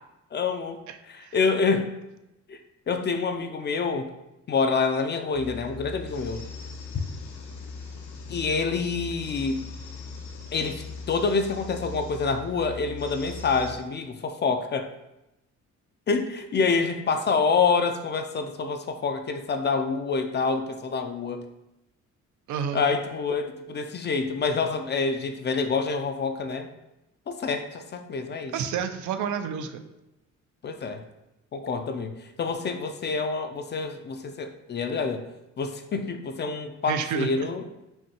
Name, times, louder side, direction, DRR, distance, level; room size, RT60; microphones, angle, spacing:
voice 1, 0.3-0.8 1.1-1.9 2.5-2.6 2.9-4.1 4.5-6.4 8.3-9.7 10.5-14.9 16.1-21.4 22.7-26.7 27.3-28.5 30.6-31.0 31.5-35.2 35.6-37.6, left 4 dB, 35° left, 7 dB, 0.4 m, -27 dB
sound 1, 5.3-13.8, left 4 dB, 75° left, 0.7 m, -40 dB
voice 2, 22.5-22.9 28.5-29.8 36.9-37.3, right 7 dB, 75° right, 8 dB, 0.5 m, -29 dB
5.3 x 2.3 x 2.9 m, 0.91 s
cardioid pair, 90°, 30 cm